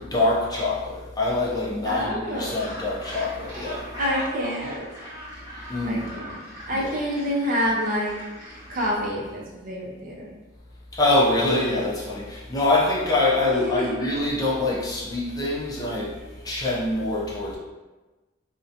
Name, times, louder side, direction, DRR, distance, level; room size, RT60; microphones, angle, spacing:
voice 1, 0.0-3.9 5.7-6.1 6.7-7.0 10.9-17.6, left 2 dB, 20° left, -5 dB, 0.4 m, -25 dB
voice 2, 1.9-2.6 4.0-4.8 5.8-6.2 6.7-8.1 8.7-10.3 13.5-13.9, equal, 45° right, -3 dB, 0.5 m, -27 dB
Gull seagull, 2.2-9.0, equal, 20° right, 1.0 m, -39 dB
2.7 x 2.1 x 2.5 m, 1.2 s
head